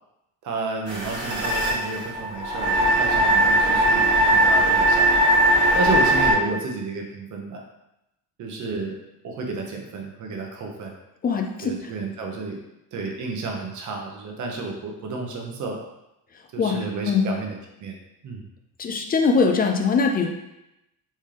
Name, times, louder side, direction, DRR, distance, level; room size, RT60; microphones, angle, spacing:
voice 1, 0.4-5.1 5.7-7.6 8.4-9.0 9.2-10.9 11.6-12.6 12.9-15.8 16.5-17.5 17.8-18.0 18.2-18.5, right 3 dB, 50° right, 1 dB, 0.8 m, -31 dB
sound 1, 0.9-6.3, right 1 dB, 30° right, 1.4 m, -19 dB
voice 2, 11.2-11.9 16.6-17.3 18.8-20.3, left 5 dB, 25° left, 4 dB, 0.3 m, -22 dB
4.3 x 3.3 x 3.7 m, 0.88 s
cardioid pair, 175°, 39 cm